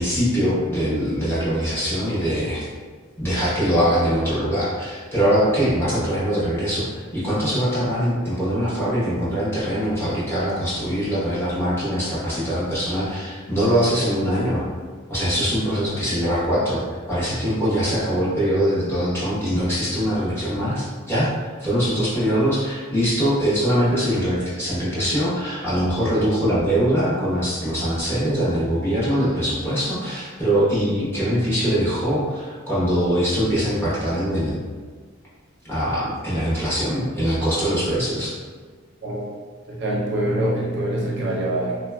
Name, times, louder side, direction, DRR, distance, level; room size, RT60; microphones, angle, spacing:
voice 1, 0.0-2.7 3.2-14.6 15.1-16.8 17.1-21.3 21.6-34.6 35.6-38.3, equal, 10° left, -10 dB, 0.7 m, -22 dB
voice 2, 39.7-41.8, right 1 dB, 50° right, -4 dB, 0.5 m, -24 dB
3.0 x 2.2 x 2.2 m, 1.5 s
head